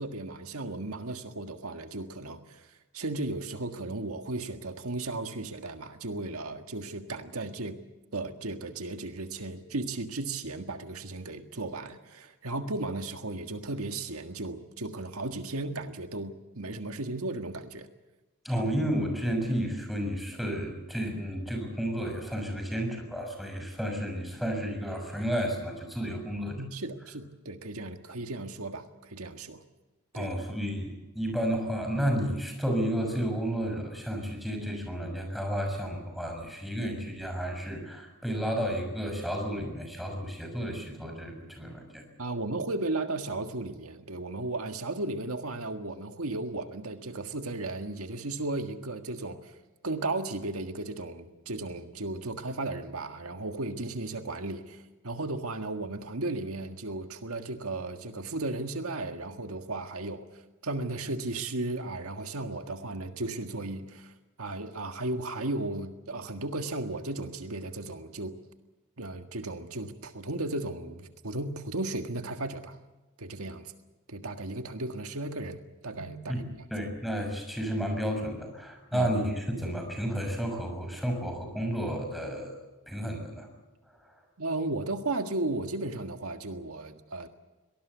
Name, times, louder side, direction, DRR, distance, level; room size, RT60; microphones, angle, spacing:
voice 1, 0.0-7.8 8.1-17.9 18.6-18.7 26.6-29.6 30.1-30.3 42.2-68.4 69.0-72.8 73.2-73.7 74.1-76.4 78.9-79.1 84.4-87.3, right 2 dB, 80° right, 6 dB, 1.7 m, -35 dB
voice 2, 18.4-26.6 30.1-42.0 76.3-76.4 76.7-82.6 82.9-83.5, equal, ahead, 3 dB, 6.5 m, -32 dB
24.0 x 19.5 x 8.2 m, 1.1 s
head